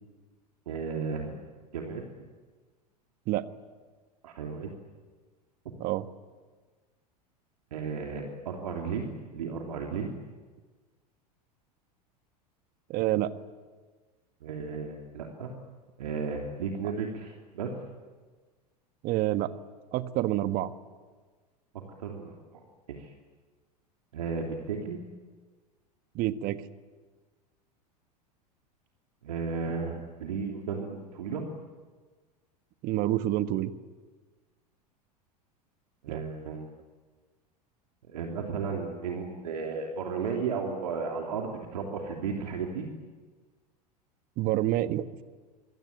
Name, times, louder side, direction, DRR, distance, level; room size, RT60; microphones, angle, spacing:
voice 1, 0.7-1.4 1.7-2.0 4.2-4.7 7.7-9.1 9.3-10.1 14.4-15.5 16.0-17.7 22.0-22.6 22.9-23.1 24.1-25.0 29.2-31.4 36.0-36.7 38.1-42.9, right 5 dB, 70° right, 1 dB, 3.2 m, -34 dB
voice 2, 12.9-13.3 19.0-19.5 19.9-20.7 26.1-26.6 32.8-33.7 36.1-36.2 44.4-45.2, right 14 dB, 45° right, 11 dB, 1.5 m, -28 dB
27.0 x 21.5 x 9.1 m, 1.4 s
figure-of-eight pair, 85°, 21 cm